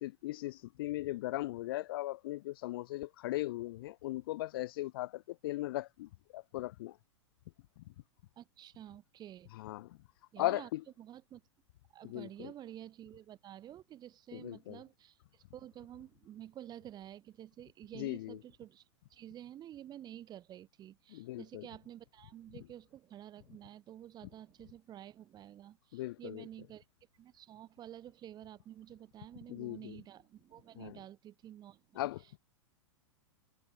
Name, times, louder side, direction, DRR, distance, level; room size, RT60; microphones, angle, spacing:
voice 1, 0.0-7.0 7.8-7.9 9.5-10.0 10.4-10.8 12.0-12.5 14.3-14.8 17.9-18.4 21.1-21.6 25.9-26.4 29.5-30.0 30.8-31.0 32.0-32.4, left 17 dB, 45° left, 0.6 m, -38 dB
voice 2, 8.4-9.5 10.3-10.7 11.0-11.4 11.9-26.8 27.2-32.0, right 11 dB, 25° right, 3.9 m, -50 dB
figure-of-eight pair, 100°, 16 cm